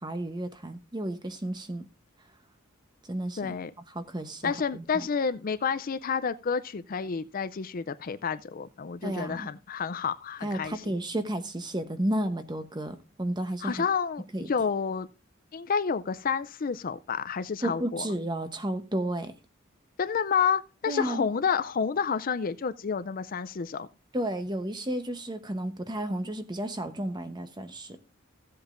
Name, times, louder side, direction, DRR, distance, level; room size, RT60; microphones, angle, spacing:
voice 1, 0.0-1.9 3.1-3.5 3.9-5.1 9.0-9.5 10.4-13.8 14.3-14.5 17.6-19.3 20.9-21.3 24.1-28.0, right 1 dB, 20° right, 0.9 m, -32 dB
voice 2, 3.4-3.7 4.4-11.0 13.6-15.1 15.5-18.1 20.0-23.9, left 6 dB, 40° left, 0.4 m, -29 dB
15.5 x 7.9 x 2.6 m
head